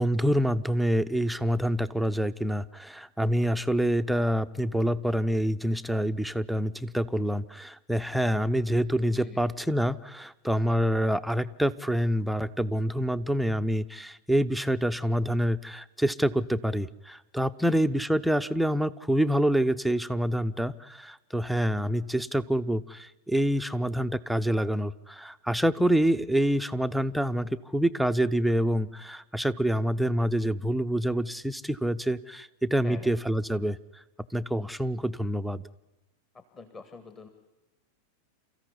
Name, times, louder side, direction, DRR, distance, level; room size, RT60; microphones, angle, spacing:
voice 1, 0.0-33.8 34.3-35.6, equal, ahead, 10 dB, 0.7 m, -27 dB
voice 2, 36.3-37.3, left 4 dB, 25° left, 9 dB, 1.9 m, -45 dB
28.0 x 14.5 x 9.8 m, 1.1 s
figure-of-eight pair, 90°, 0 cm